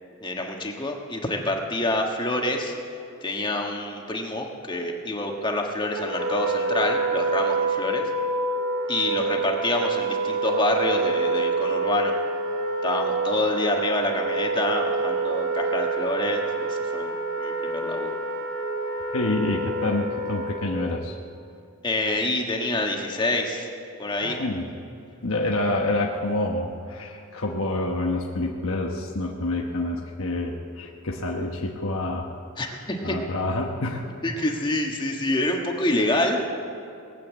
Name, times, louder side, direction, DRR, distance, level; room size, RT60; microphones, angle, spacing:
voice 1, 0.2-2.7 3.2-8.1 8.9-12.1 12.8-18.2 21.8-23.7 24.0-24.4 32.6-33.2 34.0-36.4, left 1 dB, 20° left, 1 dB, 1.4 m, -27 dB
Wind instrument woodwind instrument, 6.0-20.8, right 3 dB, 55° right, 3.3 m, -27 dB
voice 2, 19.1-21.2 24.2-24.7 25.2-32.4 33.0-34.0, left 2 dB, 65° left, 0 dB, 1.1 m, -27 dB
19.5 x 8.4 x 8.2 m, 2.6 s
head